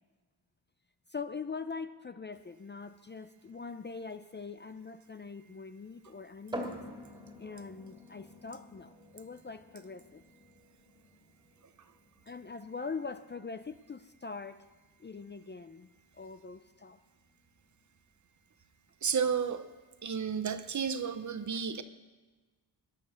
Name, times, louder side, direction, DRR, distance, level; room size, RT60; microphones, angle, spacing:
voice 1, 1.1-6.9 7.4-10.2 12.3-14.6 15.0-17.0, left 4 dB, 25° left, 10 dB, 0.4 m, -43 dB
sound 1, 6.5-20.0, equal, 10° right, 2.1 m, -49 dB
voice 2, 19.0-19.6 20.0-21.8, right 7 dB, 45° right, 11 dB, 0.8 m, -32 dB
18.0 x 11.5 x 6.3 m, 1.3 s
wide cardioid pair, 150°, 42 cm